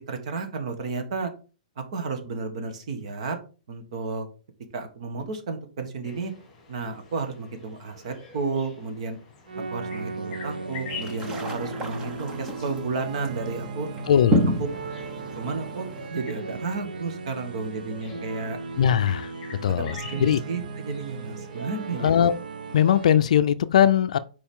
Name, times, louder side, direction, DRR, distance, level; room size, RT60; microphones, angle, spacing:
voice 1, 0.1-1.3 1.8-3.4 3.7-4.3 4.7-6.3 6.7-9.2 9.7-13.9 14.5-14.7 15.4-18.6 19.7-22.1, right 4 dB, 45° right, 1.4 m, -32 dB
sound 1, 6.0-22.4, left 5 dB, 15° left, 2.5 m, -47 dB
sound 2, 9.5-23.2, right 4 dB, 75° right, 0.9 m, -37 dB
sound 3, 10.9-16.1, equal, 10° right, 0.8 m, -30 dB
voice 2, 14.1-14.4 18.8-19.3 19.6-20.4 22.0-22.3 22.7-24.2, left 9 dB, 50° left, 0.5 m, -20 dB
7.1 x 4.8 x 3.7 m
hypercardioid pair, 175°, 5 cm